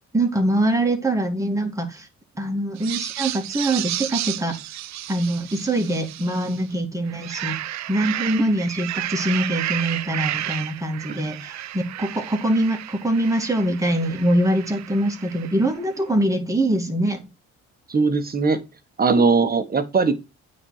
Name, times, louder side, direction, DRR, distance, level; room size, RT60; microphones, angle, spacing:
voice 1, 0.1-2.1 2.4-4.6 5.1-7.5 7.9-17.2, right 1 dB, 10° right, 2.3 m, -23 dB
sound 1, 2.8-6.7 7.1-15.7, right 13 dB, 65° right, 0.6 m, -32 dB
voice 2, 17.9-18.6 19.0-20.1, right 4 dB, 30° right, 1.4 m, -19 dB
8.7 x 4.3 x 4.9 m
cardioid pair, 90°, 30 cm